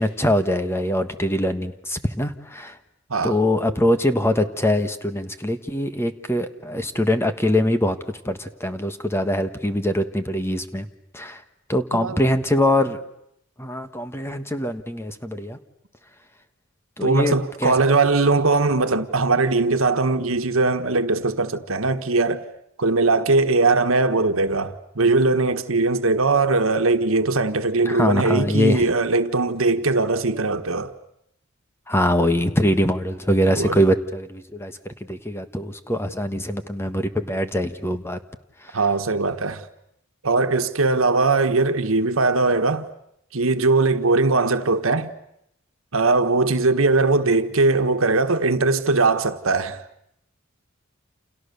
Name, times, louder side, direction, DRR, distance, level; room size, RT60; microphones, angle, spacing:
voice 1, 0.0-2.8 3.2-8.0 8.2-10.9 11.1-11.4 11.7-13.0 13.6-15.6 17.0-17.8 27.8-28.8 31.9-34.8 35.1-38.2 38.6-38.8, left 1 dB, 10° left, 1.4 m, -23 dB
voice 2, 17.0-22.4 22.8-30.9 33.5-33.8 38.7-39.7 40.2-42.9 43.3-45.1 45.9-49.8, right 3 dB, 80° right, 1.5 m, -20 dB
29.5 x 28.5 x 6.9 m
head